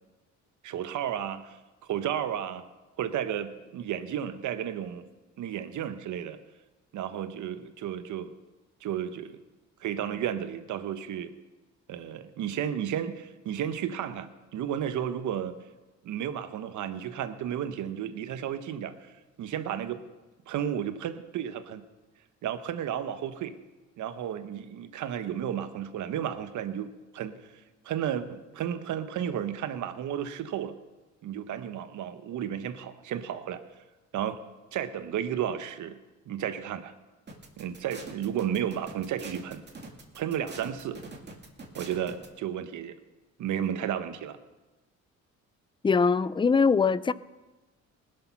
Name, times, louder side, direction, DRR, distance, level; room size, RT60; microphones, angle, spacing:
voice 1, 0.6-1.6 1.8-2.6 3.0-5.0 5.4-6.4 6.9-8.3 8.8-9.4 9.8-11.3 11.9-15.5 16.0-19.1 19.4-20.0 20.5-21.8 22.4-23.6 24.0-27.4 27.8-30.7 31.2-33.6 34.1-34.4 34.7-36.0 36.3-36.9 37.6-39.6 40.1-41.0 41.7-43.0 43.4-44.4, right 9 dB, 75° right, 1.0 m, -33 dB
sound 1, 37.3-42.3, right 3 dB, 35° right, 2.2 m, -44 dB
voice 2, 45.8-47.1, left 5 dB, 15° left, 0.4 m, -22 dB
19.5 x 6.7 x 5.8 m
cardioid pair, 90°, 30 cm